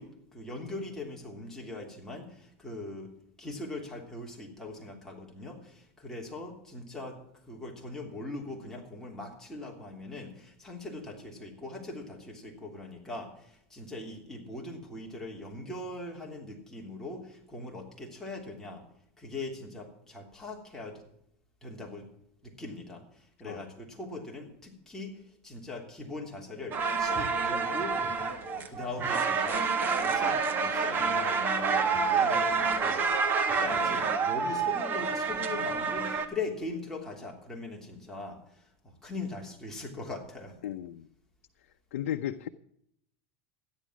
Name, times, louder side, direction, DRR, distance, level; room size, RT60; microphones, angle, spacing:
voice 1, 0.0-3.1 3.4-7.2 7.4-18.8 19.2-21.0 21.6-22.1 22.4-28.0 28.5-29.7 30.0-33.3 33.5-40.5, left 2 dB, 5° left, -2 dB, 3.3 m, -41 dB
sound 1, 26.7-36.3, right 5 dB, 30° right, 1.5 m, -28 dB
voice 2, 40.6-41.1 41.9-42.5, left 11 dB, 85° left, 7 dB, 0.7 m, -34 dB
13.5 x 10.5 x 6.2 m, 0.73 s
supercardioid pair, 140°, 7 cm